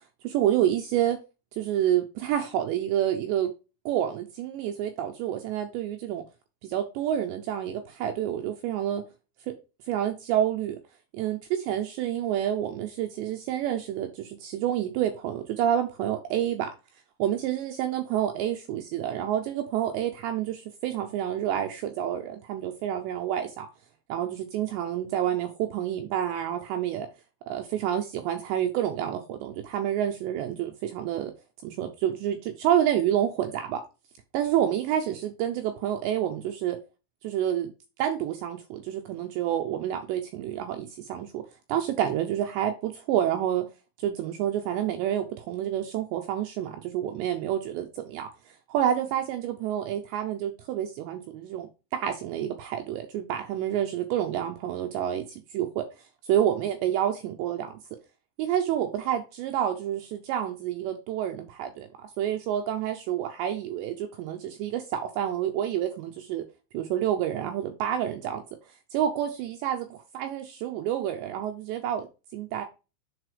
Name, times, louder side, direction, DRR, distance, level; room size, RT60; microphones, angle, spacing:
voice 1, 0.2-1.2 1.5-3.5 3.9-6.2 6.6-9.0 9.5-9.6 9.9-10.8 11.1-16.7 17.2-23.7 24.1-27.1 27.5-31.3 31.6-33.8 34.3-36.8 37.2-37.7 38.0-41.4 41.7-43.6 44.0-48.3 48.7-51.7 51.9-55.8 56.2-57.8 58.4-66.4 66.7-68.4 68.9-72.1 72.3-72.6, right 10 dB, 80° right, 2.6 m, -28 dB
11.0 x 4.1 x 3.3 m
omnidirectional pair, 5.8 m